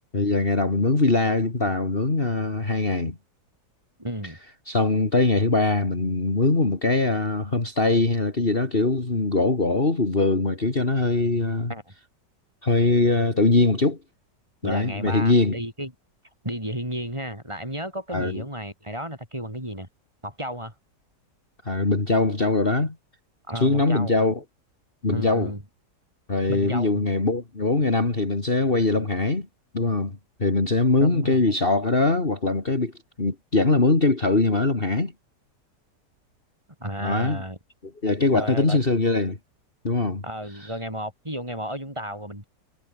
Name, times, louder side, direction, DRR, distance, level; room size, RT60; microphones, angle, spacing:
voice 1, 0.1-3.2 4.7-11.7 12.6-14.0 14.6-15.6 18.1-18.4 21.6-23.0 23.6-24.4 25.0-25.5 26.3-29.5 29.7-32.9 33.2-35.1 37.0-37.4 38.0-39.4 39.8-40.2 40.6-40.7, left 3 dB, 30° left, 3.0 m, -22 dB
voice 2, 4.0-4.4 11.7-11.8 14.6-15.9 16.4-19.9 20.2-20.7 23.5-24.2 25.1-25.6 26.5-27.1 31.0-31.5 36.8-37.6 38.3-38.8 40.2-42.5, equal, 15° right, 7.2 m, -33 dB
omnidirectional pair, 1.9 m